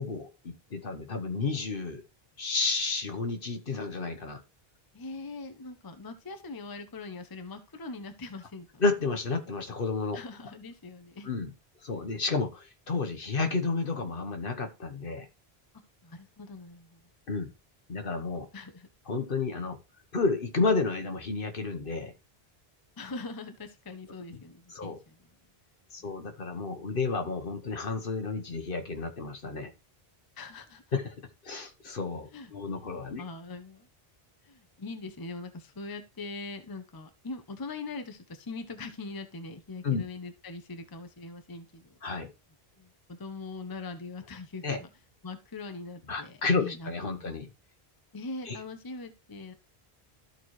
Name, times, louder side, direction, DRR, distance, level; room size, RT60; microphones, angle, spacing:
voice 1, 0.0-2.0 2.4-4.4 8.8-10.2 11.2-11.5 11.8-15.3 17.3-17.5 17.9-18.5 19.1-19.8 20.1-22.1 24.7-25.0 25.9-29.7 30.9-31.2 31.4-33.2 39.8-40.0 42.0-42.3 44.6-44.8 46.1-47.5 48.4-48.6, left 4 dB, 60° left, 1.3 m, -31 dB
voice 2, 4.9-8.8 10.1-11.3 16.0-17.0 18.5-18.9 23.0-25.2 26.0-26.1 30.4-30.8 32.3-32.5 32.8-33.9 34.5-41.9 42.8-44.9 45.2-47.3 48.1-49.5, left 3 dB, 25° left, 0.7 m, -42 dB
13.5 x 4.4 x 3.1 m
omnidirectional pair, 1.0 m